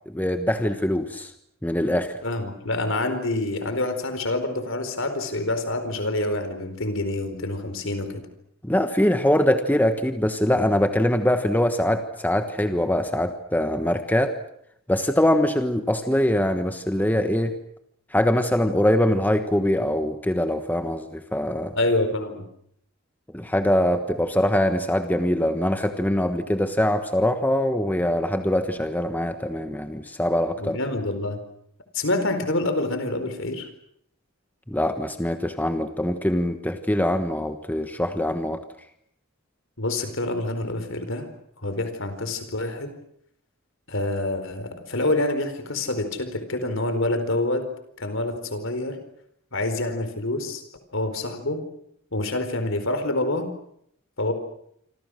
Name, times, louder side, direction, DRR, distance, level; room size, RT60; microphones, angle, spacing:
voice 1, 0.1-1.3 1.6-2.1 8.6-14.3 14.9-17.5 18.1-21.7 23.3-30.8 34.7-38.6, left 1 dB, 10° left, 8 dB, 1.3 m, -23 dB
voice 2, 2.2-8.3 21.8-22.5 30.6-31.4 31.9-33.7 39.8-41.3 41.6-42.9 43.9-47.6 48.0-49.0 49.5-50.6 50.9-51.6 52.1-53.5 54.2-54.3, left 2 dB, 60° left, 9 dB, 4.4 m, -27 dB
27.0 x 26.0 x 6.5 m, 0.70 s
head